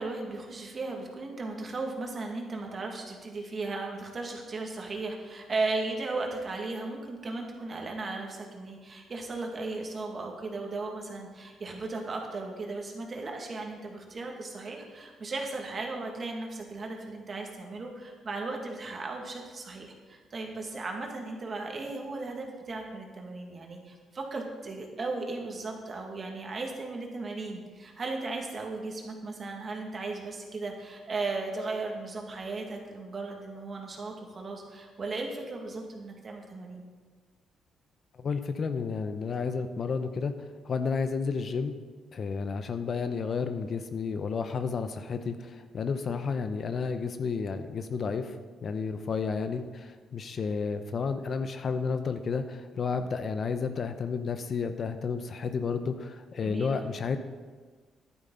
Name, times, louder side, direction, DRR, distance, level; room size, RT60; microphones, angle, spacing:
voice 1, 0.0-36.8 56.4-56.9, right 3 dB, 40° right, 1 dB, 2.0 m, -36 dB
voice 2, 38.2-40.3 40.6-41.7 42.1-48.3 48.6-57.2, left 5 dB, 50° left, 9 dB, 0.7 m, -31 dB
11.0 x 9.8 x 3.9 m, 1.4 s
cardioid pair, 90°, 0 cm